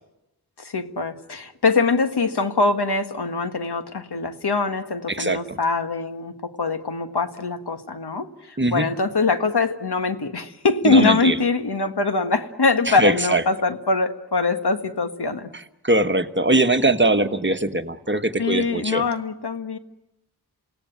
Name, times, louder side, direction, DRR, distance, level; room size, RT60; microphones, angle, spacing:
voice 1, 0.6-15.5 18.4-19.8, left 3 dB, 85° left, 8 dB, 1.7 m, -23 dB
voice 2, 5.1-5.6 8.6-8.9 10.8-11.4 12.9-13.4 15.8-19.0, right 2 dB, 30° right, 9 dB, 1.2 m, -21 dB
28.5 x 17.5 x 9.3 m, 0.91 s
wide cardioid pair, 65°, 38 cm